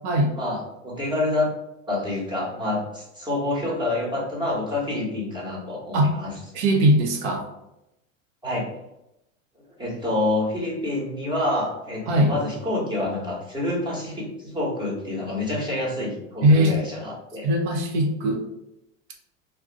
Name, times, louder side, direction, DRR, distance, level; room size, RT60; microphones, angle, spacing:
voice 1, 0.3-1.5 1.9-6.3 8.4-8.7 9.8-17.5, left 2 dB, 10° right, -4 dB, 1.1 m, -27 dB
voice 2, 6.5-7.5 12.1-12.3 16.4-16.8 17.4-18.4, right 1 dB, 55° right, 2 dB, 0.9 m, -20 dB
2.4 x 2.3 x 3.8 m, 0.87 s
hypercardioid pair, 110°, 40 cm